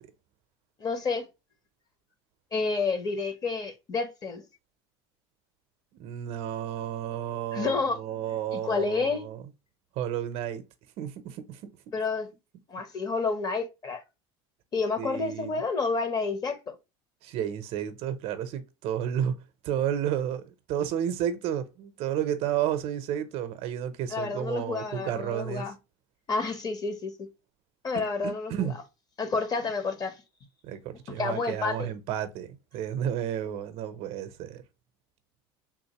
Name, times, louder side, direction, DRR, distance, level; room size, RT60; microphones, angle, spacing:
voice 1, 0.8-1.3 2.5-4.4 7.5-8.0 8.5-9.3 11.9-12.3 12.7-14.0 14.7-16.8 24.1-25.7 26.3-27.3 27.8-28.7 29.2-30.2 31.1-31.9, left 4 dB, 30° left, 0.9 m, -29 dB
voice 2, 6.0-9.4 10.0-10.6 11.0-11.8 15.0-15.6 17.2-19.4 19.6-25.7 27.9-28.8 30.6-32.5 32.7-34.6, right 10 dB, 55° right, 0.6 m, -32 dB
3.6 x 2.5 x 2.8 m
supercardioid pair, 125°, 12 cm